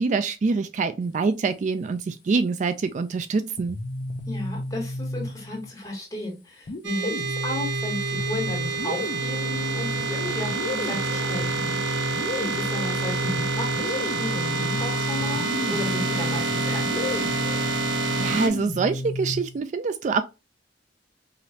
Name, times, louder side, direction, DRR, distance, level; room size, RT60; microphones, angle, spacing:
voice 1, 0.0-3.8 17.7-20.2, right 4 dB, 40° right, 0.3 m, -25 dB
sound 1, 3.6-5.7 6.7-19.6, left 1 dB, 45° left, 0.5 m, -32 dB
voice 2, 4.3-17.3, left 1 dB, 20° left, 2.1 m, -34 dB
sound 2, 6.8-18.5, right 4 dB, 85° right, 0.9 m, -28 dB
4.8 x 3.0 x 2.7 m
head